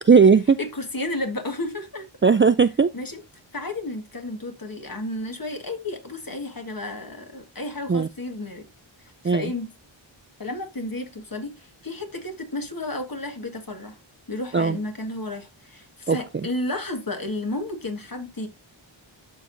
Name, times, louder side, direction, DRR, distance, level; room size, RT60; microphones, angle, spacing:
voice 1, 0.1-0.6 2.2-2.9 7.9-8.1 9.2-9.5 14.5-14.8 16.1-16.5, right 5 dB, 25° right, 0.3 m, -17 dB
voice 2, 0.6-2.1 2.9-3.2 3.5-8.7 9.2-9.7 10.4-14.0 14.3-18.5, left 2 dB, 45° left, 1.7 m, -32 dB
12.5 x 4.7 x 2.6 m
wide cardioid pair, 60°, 48 cm